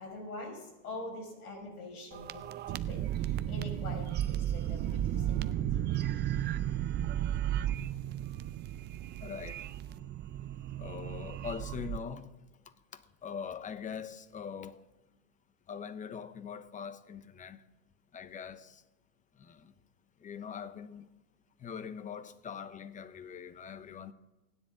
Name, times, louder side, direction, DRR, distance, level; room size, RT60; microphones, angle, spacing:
voice 1, 0.0-5.8, left 2 dB, 85° left, 6.0 m, -44 dB
sound 1, 2.1-12.0, right 11 dB, 25° right, 0.5 m, -34 dB
voice 2, 9.2-9.6 10.8-12.3 12.9-14.8 15.7-17.6 18.1-18.8 19.4-19.7 20.2-21.1 21.6-24.1, left 7 dB, 20° left, 0.8 m, -42 dB
29.0 x 10.0 x 3.8 m
hypercardioid pair, 115°, 43 cm